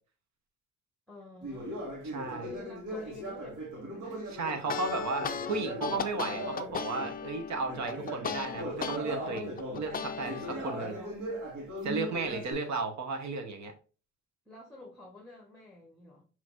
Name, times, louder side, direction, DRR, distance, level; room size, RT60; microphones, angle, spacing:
voice 1, 1.1-1.8 2.4-3.6 3.9-4.3 11.9-12.3 14.4-16.3, left 2 dB, 5° left, 1.1 m, -50 dB
Conversation, 1.4-7.2 7.6-12.5, right 1 dB, 80° right, 1.7 m, -39 dB
voice 2, 2.1-2.5 4.4-11.0 11.8-13.7, right 3 dB, 65° right, 1.1 m, -34 dB
sound 1, 4.5-9.0 9.4-10.5, left 6 dB, 30° left, 0.4 m, -36 dB
5.8 x 3.0 x 2.5 m
cardioid pair, 90°, 30 cm